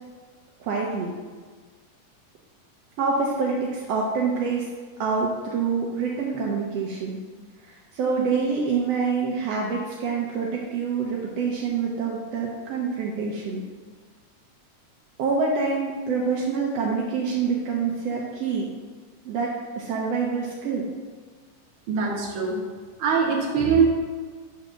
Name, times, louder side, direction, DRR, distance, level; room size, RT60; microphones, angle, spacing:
voice 1, 0.6-1.2 3.0-4.7 5.0-7.2 7.6-13.6 15.2-18.7 19.2-20.9, right 5 dB, 80° right, -2 dB, 1.4 m, -26 dB
voice 2, 21.9-22.6 23.0-23.9, right 5 dB, 55° right, -1 dB, 1.5 m, -22 dB
7.5 x 4.2 x 6.3 m, 1.5 s
omnidirectional pair, 3.8 m